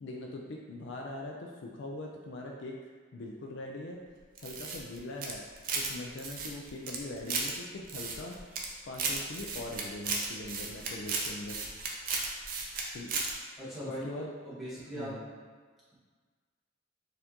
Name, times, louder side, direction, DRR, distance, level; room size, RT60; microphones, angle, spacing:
voice 1, 0.0-2.8 3.1-4.0 4.4-5.4 5.7-8.4 8.9-11.6 12.9-13.2 14.0-14.3 14.9-15.2, left 2 dB, 60° left, 0 dB, 0.4 m, -41 dB
sound 1, 4.4-5.9 6.2-7.5 7.9-8.7 8.9-12.8 13.1-13.3, right 4 dB, 45° right, 0.4 m, -34 dB
voice 2, 13.6-15.3, right 1 dB, ahead, -12 dB, 1.0 m, -40 dB
4.2 x 2.6 x 2.8 m, 1.5 s
head